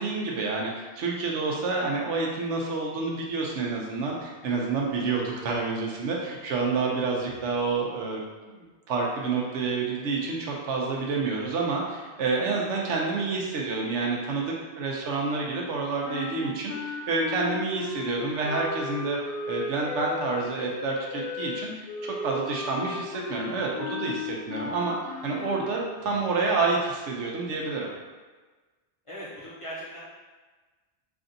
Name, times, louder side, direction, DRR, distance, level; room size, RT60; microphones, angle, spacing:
voice 1, 0.0-19.2 19.5-25.0 25.2-27.9, right 4 dB, 90° right, -1 dB, 1.0 m, -28 dB
sound 1, 16.0-25.7, left 4 dB, 65° left, 0.3 m, -35 dB
voice 2, 29.0-30.0, equal, 30° left, -9 dB, 1.0 m, -41 dB
3.4 x 2.6 x 3.8 m, 1.3 s
omnidirectional pair, 1.2 m